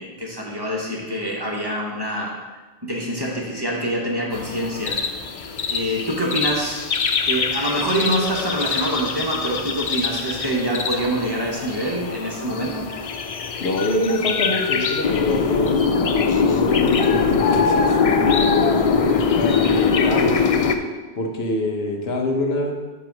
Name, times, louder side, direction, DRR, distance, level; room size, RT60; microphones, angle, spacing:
voice 1, 0.0-2.3 2.8-5.0 5.7-6.8 7.2-12.9, right 1 dB, 25° right, -3 dB, 1.0 m, -25 dB
sound 1, 4.3-20.8, left 5 dB, 55° left, 0.4 m, -22 dB
voice 2, 13.6-20.5 21.1-22.7, left 2 dB, 75° left, 1 dB, 1.1 m, -25 dB
7.7 x 3.1 x 5.9 m, 1.3 s
omnidirectional pair, 1.0 m